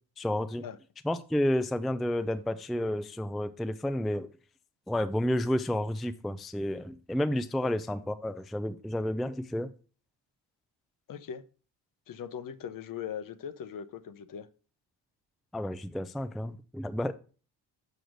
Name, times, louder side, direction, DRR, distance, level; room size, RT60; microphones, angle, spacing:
voice 1, 0.2-0.6 1.0-4.3 4.9-9.7 15.5-17.1, left 1 dB, ahead, 0.3 m, -31 dB
voice 2, 11.1-11.4 12.1-14.5, left 8 dB, 55° left, 0.7 m, -40 dB
6.2 x 5.0 x 6.4 m
cardioid pair, 115°, 40 cm